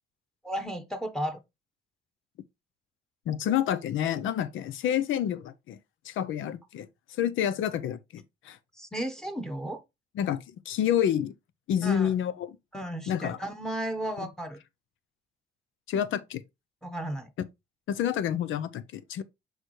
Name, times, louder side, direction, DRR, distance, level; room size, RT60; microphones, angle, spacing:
voice 1, 0.4-1.4 8.8-9.8 11.8-12.1 12.7-14.6 16.8-17.3, right 1 dB, 5° left, 1.2 m, -34 dB
voice 2, 3.3-5.8 6.0-8.6 10.2-11.3 11.7-12.6 13.1-13.4 14.2-14.3 15.9-16.4 17.9-19.2, left 10 dB, 80° left, 0.7 m, -29 dB
6.7 x 4.7 x 3.2 m
cardioid pair, 90°, 20 cm